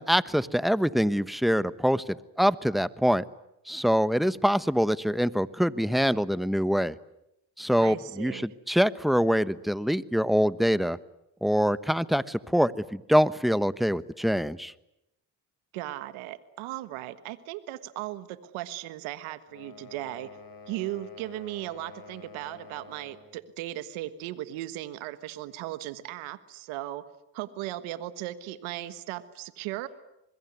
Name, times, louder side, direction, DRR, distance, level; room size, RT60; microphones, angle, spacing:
voice 1, 0.0-3.2 3.7-6.9 7.6-11.0 11.4-14.7, equal, ahead, 16 dB, 1.1 m, -25 dB
voice 2, 7.8-8.5 15.7-20.3 20.7-27.0 27.3-29.9, right 15 dB, 85° right, 13 dB, 1.5 m, -37 dB
sound 1, 19.5-23.4, left 4 dB, 45° left, 5.0 m, -48 dB
26.0 x 21.5 x 9.5 m, 0.85 s
supercardioid pair, 60°, 47 cm